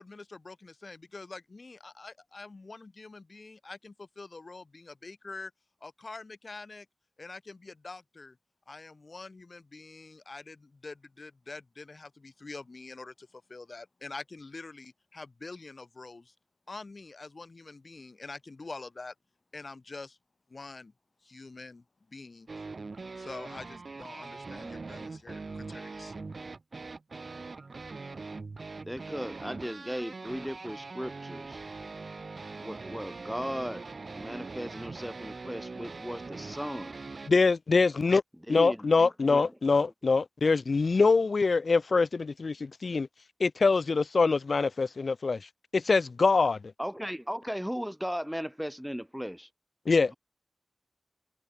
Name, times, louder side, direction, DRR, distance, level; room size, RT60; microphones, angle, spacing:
voice 1, 0.0-5.5 5.8-6.9 7.2-8.4 8.7-16.3 16.7-19.1 19.5-20.2 20.5-20.9 21.2-22.6 23.2-26.4, left 3 dB, 60° left, 1.9 m, -45 dB
sound 1, 22.5-37.3, right 3 dB, 75° right, 1.9 m, -42 dB
voice 2, 28.8-31.6 32.6-37.0 38.5-39.5 46.8-49.5, equal, ahead, 0.9 m, -37 dB
voice 3, 37.3-38.2 38.5-43.1 43.4-45.4 45.7-46.6 49.9-50.1, left 4 dB, 85° left, 0.3 m, -24 dB
wide cardioid pair, 80°, 0 cm